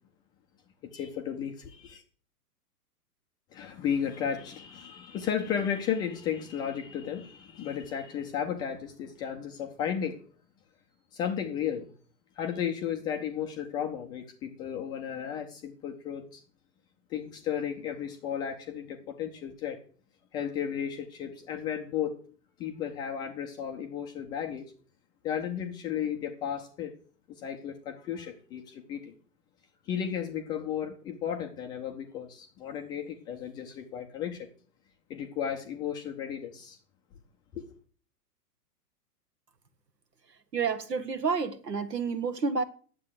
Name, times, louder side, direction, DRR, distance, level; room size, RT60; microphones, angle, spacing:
voice 1, 0.9-2.0 3.5-10.2 11.1-11.9 12.4-16.4 17.1-19.8 20.3-22.2 22.6-24.7 25.2-26.9 27.4-29.1 29.9-34.5 35.1-36.8 37.5-37.6, left 8 dB, 10° left, 0.4 m, -34 dB
voice 2, 40.5-42.6, right 5 dB, 80° right, 1.4 m, -29 dB
9.9 x 7.5 x 8.0 m
figure-of-eight pair, 110°, 48 cm